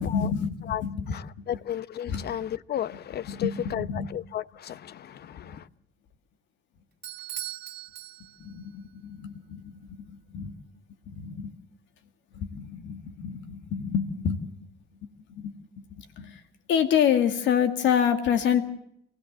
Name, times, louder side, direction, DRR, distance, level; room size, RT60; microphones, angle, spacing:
voice 1, 0.0-1.5 2.1-2.3 3.3-4.1 8.4-10.5 11.1-11.5 12.3-14.4 15.0-15.5 15.9-16.4 16.7-18.6, left 8 dB, 80° left, 2.2 m, -28 dB
voice 2, 1.1-5.7, left 11 dB, 60° left, 0.8 m, -34 dB
Bell / Doorbell, 7.0-8.7, right 11 dB, 60° right, 1.3 m, -39 dB
27.0 x 16.5 x 7.4 m
cardioid pair, 105°, 19 cm